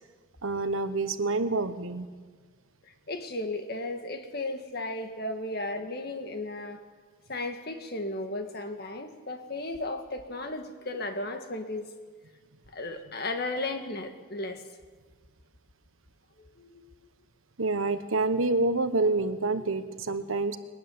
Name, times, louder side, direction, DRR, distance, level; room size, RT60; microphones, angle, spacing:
voice 1, 0.4-2.1 5.2-5.3 17.6-20.6, right 3 dB, 80° right, 10 dB, 1.3 m, -27 dB
voice 2, 3.1-6.8 7.3-11.9 12.7-14.6 16.4-17.1, left 2 dB, 50° left, 6 dB, 1.8 m, -35 dB
22.0 x 12.5 x 9.7 m, 1.4 s
head